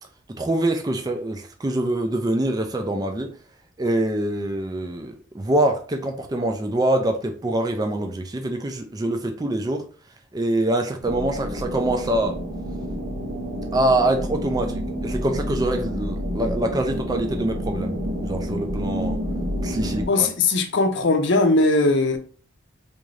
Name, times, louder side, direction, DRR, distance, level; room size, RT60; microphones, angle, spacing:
voice 1, 0.4-3.3 3.8-9.8 10.3-12.4 13.7-17.9 18.2-19.2 19.6-20.3, right 1 dB, 20° right, 0.3 m, -24 dB
sound 1, 11.0-20.1, equal, 85° right, 1.9 m, -29 dB
voice 2, 20.1-22.2, left 2 dB, 60° left, 0.6 m, -19 dB
3.6 x 2.5 x 3.1 m
head